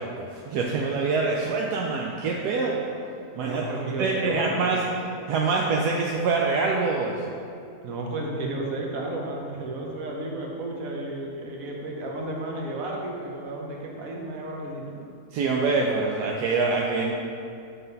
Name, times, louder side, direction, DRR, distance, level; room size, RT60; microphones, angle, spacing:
voice 1, 0.0-2.8 3.3-3.7 4.0-4.8 5.3-7.2 15.3-17.1, right 4 dB, 80° right, -1 dB, 1.2 m, -25 dB
voice 2, 3.4-4.8 7.8-15.0, right 2 dB, 60° right, -1 dB, 1.4 m, -32 dB
7.7 x 4.2 x 5.3 m, 2.5 s
omnidirectional pair, 1.7 m